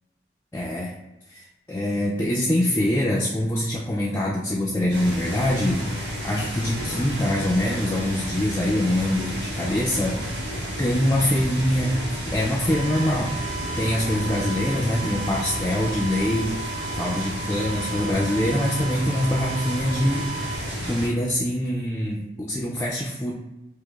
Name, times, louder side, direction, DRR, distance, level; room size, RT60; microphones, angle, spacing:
voice 1, 0.5-0.9 1.3-5.8 6.2-10.2 10.5-12.0 12.2-23.3, left 1 dB, 15° left, -5 dB, 0.3 m, -24 dB
sound 1, 4.9-21.1, equal, 60° right, 1.4 m, -31 dB
sound 2, 12.7-20.6, right 5 dB, 80° right, 0.8 m, -36 dB
4.9 x 2.0 x 2.2 m, 0.96 s
head